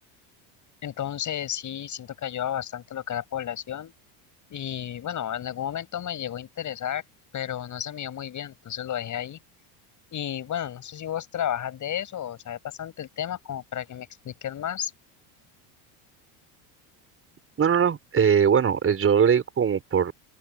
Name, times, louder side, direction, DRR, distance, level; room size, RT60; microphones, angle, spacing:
voice 1, 0.8-3.9 4.5-7.0 7.3-9.4 10.1-14.9, left 10 dB, 40° left, 7.9 m, -32 dB
voice 2, 17.6-20.1, right 7 dB, 30° right, 5.6 m, -21 dB
open air
cardioid pair, 140°, 46 cm